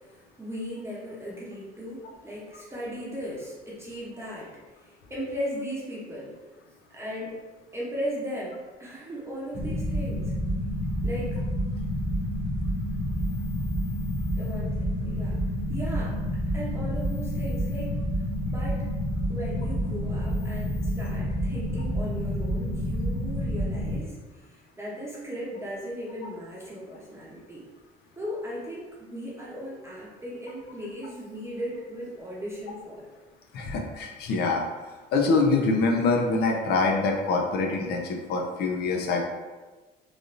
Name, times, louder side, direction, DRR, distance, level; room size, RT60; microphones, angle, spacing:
voice 1, 0.1-6.3 6.9-7.4 7.7-10.3 11.0-11.4 14.4-15.4 15.7-16.2 16.5-17.9 18.5-18.8 19.3-27.6 28.2-33.1, equal, 15° right, -6 dB, 0.7 m, -37 dB
sound 1, 9.5-24.0, equal, 30° left, 0.7 m, -29 dB
voice 2, 33.5-34.7 35.1-39.2, left 3 dB, 70° left, 1 dB, 0.5 m, -25 dB
3.2 x 2.6 x 2.5 m, 1.3 s
cardioid pair, 110°, 17 cm